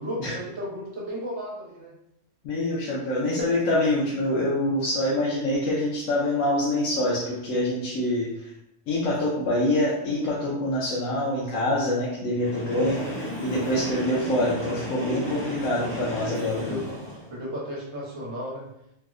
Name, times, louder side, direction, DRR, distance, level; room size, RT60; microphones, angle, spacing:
voice 1, 0.0-1.9 16.5-16.8 17.3-18.6, equal, 65° right, -5 dB, 1.2 m, -34 dB
voice 2, 2.4-8.5 8.9-16.8, left 1 dB, 80° left, -6 dB, 1.0 m, -25 dB
Train, 12.4-17.4, equal, 25° left, 0.8 m, -34 dB
3.4 x 2.0 x 2.4 m, 0.79 s
omnidirectional pair, 1.3 m